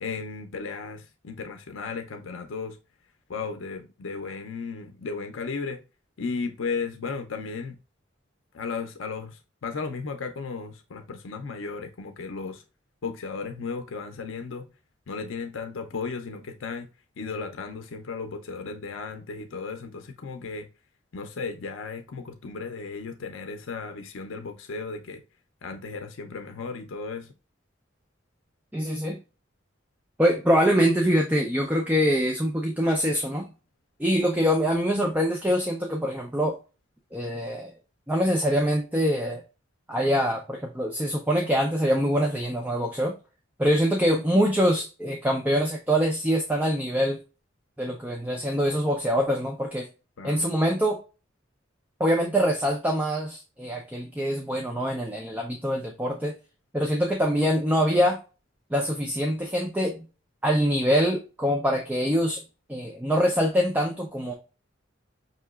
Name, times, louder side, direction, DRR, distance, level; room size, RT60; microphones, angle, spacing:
voice 1, 0.0-2.8 3.3-5.8 6.2-7.8 8.5-12.6 13.0-14.7 15.1-16.9 17.2-20.7 21.1-25.2 25.6-27.3 50.2-50.5, left 4 dB, 85° left, 0.5 m, -35 dB
voice 2, 28.7-29.2 30.2-33.5 34.0-36.5 37.1-37.7 38.1-39.4 39.9-43.1 43.6-47.2 47.8-49.9 50.2-51.0 52.0-56.3 56.7-58.2 58.7-60.1 60.4-62.4 62.7-64.3, equal, 10° right, 0.5 m, -24 dB
5.4 x 2.9 x 2.3 m
head